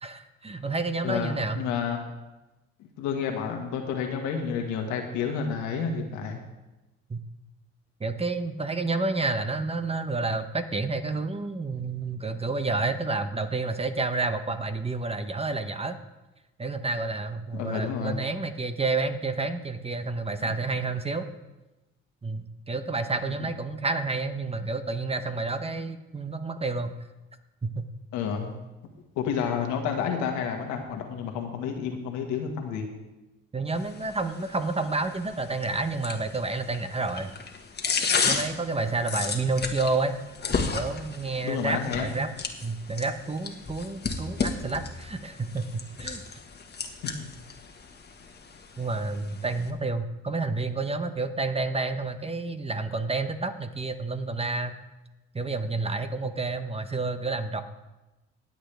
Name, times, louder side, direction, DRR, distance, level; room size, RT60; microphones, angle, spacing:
voice 1, 0.0-1.6 7.1-7.2 8.0-16.0 16.6-21.3 22.2-27.0 27.6-27.8 33.5-37.3 38.2-40.2 40.7-42.3 42.6-46.2 48.8-54.8 55.3-57.6, right 3 dB, 20° right, 9 dB, 1.0 m, -30 dB
voice 2, 1.0-2.0 2.8-6.4 17.5-18.2 28.1-28.5 29.2-32.9 41.4-42.2 47.2-47.3, left 6 dB, 85° left, 3 dB, 1.7 m, -30 dB
sound 1, 33.7-49.7, left 5 dB, 35° left, 1.5 m, -34 dB
19.5 x 7.9 x 3.4 m, 1.0 s
supercardioid pair, 75°, 29 cm